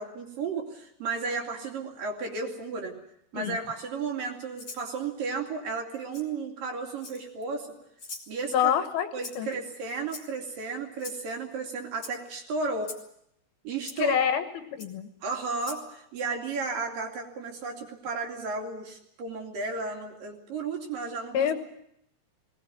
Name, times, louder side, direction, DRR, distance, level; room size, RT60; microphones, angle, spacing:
voice 1, 0.0-3.0 3.3-7.7 8.3-8.5 9.1-12.9 13.6-14.1 15.2-21.5, right 4 dB, 55° right, 2 dB, 4.1 m, -33 dB
Rattle (instrument), 4.6-4.9 6.1-6.2 7.0-7.4 8.0-8.3 9.2-9.5 10.1-10.5 11.0-11.2 12.0-12.1 12.8-13.0 13.9-14.0 14.8-14.9 15.6-15.8, left 3 dB, 30° left, 3.1 m, -42 dB
voice 2, 8.5-9.1 9.4-9.6 14.0-14.5 14.7-15.1 21.3-21.5, left 9 dB, 75° left, 9 dB, 3.0 m, -26 dB
19.5 x 18.5 x 9.4 m, 0.75 s
omnidirectional pair, 4.8 m